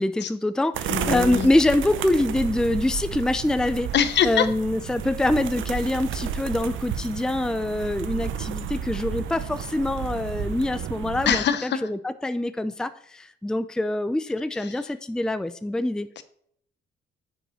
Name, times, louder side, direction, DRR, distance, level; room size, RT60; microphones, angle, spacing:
voice 1, 0.0-3.9 4.2-16.1, left 1 dB, 5° left, 12 dB, 0.4 m, -25 dB
sound 1, 0.7-11.4, right 8 dB, 80° right, 0.7 m, -32 dB
voice 2, 0.9-1.5 3.9-4.5 11.3-11.9 14.5-14.8 16.2-16.3, left 8 dB, 60° left, 12 dB, 0.8 m, -24 dB
9.8 x 5.3 x 4.3 m, 0.66 s
cardioid pair, 90°, 20 cm